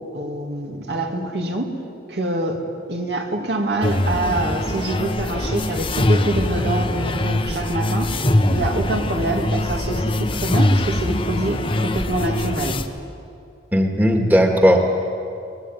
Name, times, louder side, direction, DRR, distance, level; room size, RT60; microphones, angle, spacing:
voice 1, 0.0-1.8 2.1-2.6 2.9-8.1 8.5-12.8, right 1 dB, 70° right, 2 dB, 2.7 m, -25 dB
sound 1, 3.8-12.8, left 1 dB, 30° left, 1.1 m, -22 dB
voice 2, 13.7-14.8, equal, 10° right, 2 dB, 1.9 m, -16 dB
24.0 x 19.5 x 9.4 m, 2.5 s
head